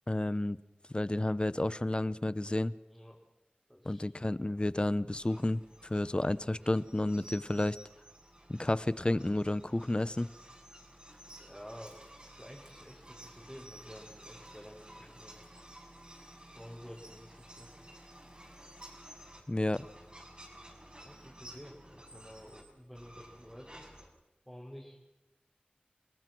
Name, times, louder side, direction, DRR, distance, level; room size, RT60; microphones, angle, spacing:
voice 1, 0.1-0.6 0.9-2.7 3.8-7.8 8.5-10.3 19.5-19.9, left 1 dB, 35° left, 17 dB, 0.7 m, -31 dB
voice 2, 2.8-3.2 3.7-4.3 11.4-12.0 12.4-15.6 16.5-17.9 21.0-23.9 24.5-25.0, equal, 5° left, -5 dB, 5.3 m, -51 dB
sound 1, 5.1-19.4 19.7-22.6 23.0-24.1, right 1 dB, 30° right, 6.1 m, -53 dB
30.0 x 20.0 x 6.2 m, 1.0 s
wide cardioid pair, 45°, 3 cm